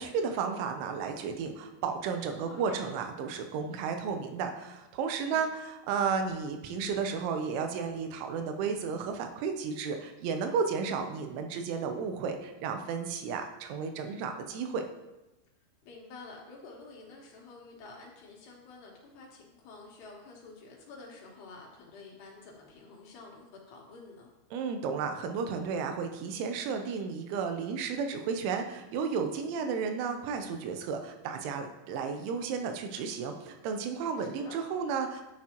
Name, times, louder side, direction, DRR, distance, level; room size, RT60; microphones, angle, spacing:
voice 1, 0.0-14.8 24.5-35.2, right 5 dB, 85° right, 6 dB, 3.2 m, -33 dB
voice 2, 2.4-3.0 5.3-5.5 15.8-24.3 34.2-34.6, left 3 dB, 70° left, -1 dB, 3.2 m, -49 dB
11.0 x 7.5 x 2.9 m, 1.0 s
omnidirectional pair, 5.3 m